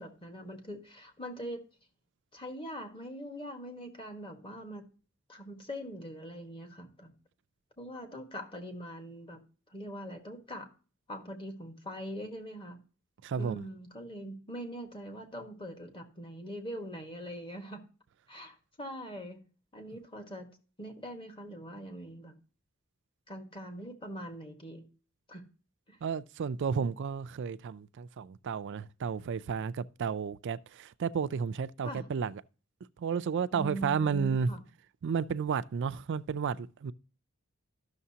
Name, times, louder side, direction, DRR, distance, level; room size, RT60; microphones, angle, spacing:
voice 1, 0.0-1.6 2.3-4.9 5.3-7.1 7.8-9.4 9.7-10.7 11.1-12.8 13.4-17.8 18.3-19.4 19.7-20.5 20.8-22.3 23.3-24.9 25.3-25.4 25.9-26.0 31.8-32.0 33.5-34.6, equal, 25° left, 1.5 m, -42 dB
voice 2, 13.2-13.7 26.0-32.4 33.0-34.5 35.0-36.9, right 6 dB, 55° right, 0.4 m, -32 dB
12.5 x 6.5 x 2.8 m
head